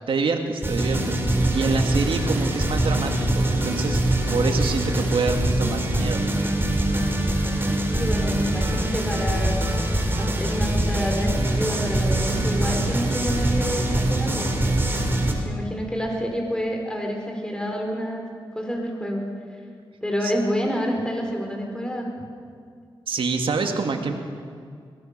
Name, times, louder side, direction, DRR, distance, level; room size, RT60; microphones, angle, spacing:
voice 1, 0.1-6.2 20.2-20.3 23.1-24.1, right 4 dB, 75° right, 4 dB, 2.4 m, -26 dB
sound 1, 0.6-15.3, right 1 dB, 25° right, 4.0 m, -23 dB
voice 2, 7.9-9.6 10.2-14.8 15.3-18.3 18.5-19.3 20.0-22.1, equal, 10° left, 1 dB, 4.7 m, -28 dB
22.0 x 18.0 x 6.9 m, 2.2 s
cardioid pair, 70°, 9 cm